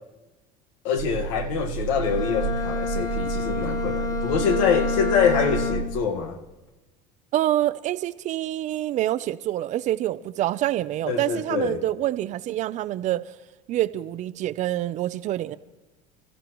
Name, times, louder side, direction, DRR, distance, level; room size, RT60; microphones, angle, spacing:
voice 1, 0.8-6.4 11.1-11.8, left 6 dB, 85° left, 1.6 m, -25 dB
sound 1, 1.0-6.3, right 7 dB, 70° right, 1.4 m, -31 dB
Bowed string instrument, 2.0-6.1, left 7 dB, 20° left, 0.9 m, -29 dB
voice 2, 7.3-13.3 13.7-15.6, right 14 dB, 45° right, 0.6 m, -26 dB
29.5 x 14.0 x 3.1 m
cardioid pair, 130°, 17 cm